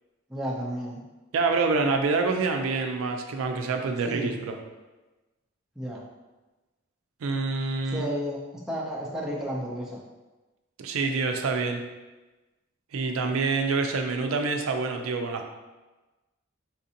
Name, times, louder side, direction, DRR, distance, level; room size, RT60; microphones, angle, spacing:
voice 1, 0.3-1.0 4.1-4.4 5.8-6.0 7.9-8.4 8.7-10.0, equal, 5° right, -4 dB, 0.5 m, -32 dB
voice 2, 1.3-4.6 7.2-8.1 10.8-11.8 12.9-15.5, right 4 dB, 85° right, 4 dB, 0.4 m, -26 dB
4.1 x 2.5 x 2.7 m, 1.1 s
head